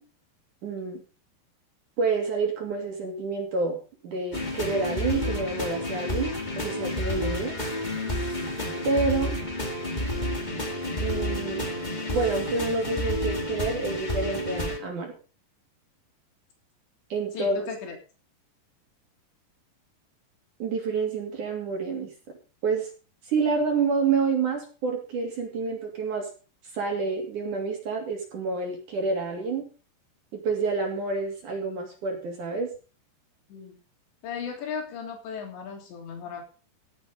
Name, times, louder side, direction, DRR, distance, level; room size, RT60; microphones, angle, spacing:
voice 1, 0.6-1.0 2.0-3.8 4.0-6.3 6.6-7.6 8.8-9.4 11.0-11.7 12.1-15.1 17.1-17.7 20.6-22.1 22.6-22.9 23.3-26.3 26.7-29.7 30.4-32.7, right 4 dB, 50° right, 1 dB, 4.0 m, -28 dB
sound 1, 4.3-14.8, left 1 dB, 25° left, 0.9 m, -30 dB
voice 2, 17.3-18.0 33.5-33.8 34.2-36.4, left 6 dB, 85° left, 3 dB, 5.5 m, -36 dB
16.5 x 8.2 x 5.3 m, 0.36 s
omnidirectional pair, 4.9 m